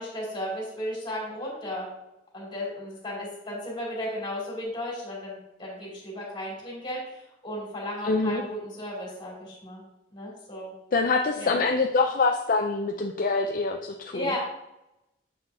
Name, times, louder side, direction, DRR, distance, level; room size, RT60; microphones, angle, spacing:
voice 1, 0.0-1.9 2.3-9.8 10.1-10.7 11.4-11.6 14.1-14.4, left 1 dB, 25° left, -4 dB, 2.5 m, -35 dB
voice 2, 8.0-8.4 10.9-14.3, left 3 dB, 50° left, 3 dB, 0.4 m, -25 dB
7.4 x 5.9 x 2.7 m, 0.88 s
head